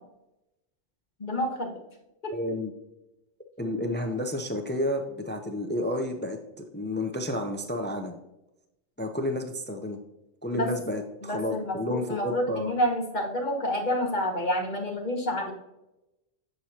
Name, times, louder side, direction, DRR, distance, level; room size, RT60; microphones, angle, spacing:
voice 1, 1.2-1.7 2.2-2.3 10.5-10.7 11.2-15.5, equal, 40° left, 0 dB, 1.5 m, -28 dB
voice 2, 2.3-2.7 3.6-8.2 9.0-10.0 10.4-12.7, left 1 dB, 15° left, 5 dB, 0.4 m, -31 dB
7.8 x 6.4 x 2.8 m, 0.93 s
omnidirectional pair, 1.3 m